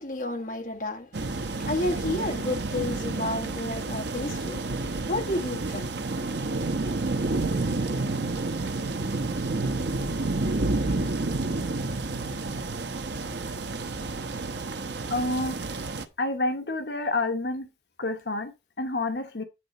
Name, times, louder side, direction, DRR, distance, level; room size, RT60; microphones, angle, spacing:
voice 1, 0.0-4.6 5.1-5.9 10.4-11.0, left 1 dB, 50° left, 1.5 m, -31 dB
sound 1, 1.1-16.1, right 2 dB, 80° right, 1.0 m, -30 dB
voice 2, 15.1-15.6 16.2-17.7 18.0-19.4, left 2 dB, 75° left, 1.2 m, -28 dB
10.0 x 4.0 x 5.4 m
head